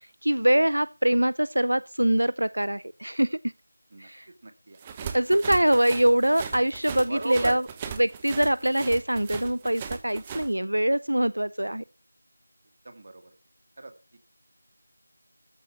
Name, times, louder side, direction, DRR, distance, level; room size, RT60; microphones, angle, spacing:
voice 1, 0.2-3.4 4.0-4.3 5.1-7.7 8.0-11.8, right 1 dB, 75° right, 0.5 m, -23 dB
voice 2, 4.4-5.2 7.1-7.5 12.9-13.2 13.8-14.2, right 2 dB, 35° right, 2.1 m, -36 dB
sound 1, 4.8-10.5, right 7 dB, 15° right, 0.9 m, -38 dB
14.0 x 6.9 x 5.9 m
figure-of-eight pair, 170°, 0 cm